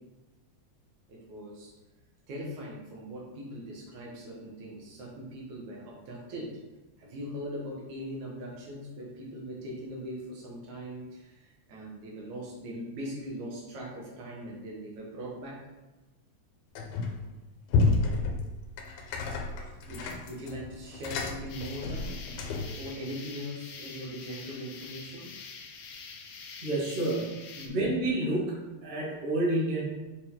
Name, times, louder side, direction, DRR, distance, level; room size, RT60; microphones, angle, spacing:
voice 1, 1.1-1.7 2.3-6.6 7.0-15.6 19.3-19.4 19.9-22.1 22.8-25.3 27.6-27.8, equal, 80° right, -3 dB, 2.8 m, -40 dB
sound 1, 16.8-17.3 17.7-22.8, left 3 dB, 90° left, 2.2 m, -30 dB
sound 2, 21.5-27.7, left 5 dB, 70° left, 1.5 m, -46 dB
voice 2, 26.6-29.8, right 1 dB, 25° right, -5 dB, 1.2 m, -29 dB
6.2 x 4.5 x 3.8 m, 1.1 s
omnidirectional pair, 3.3 m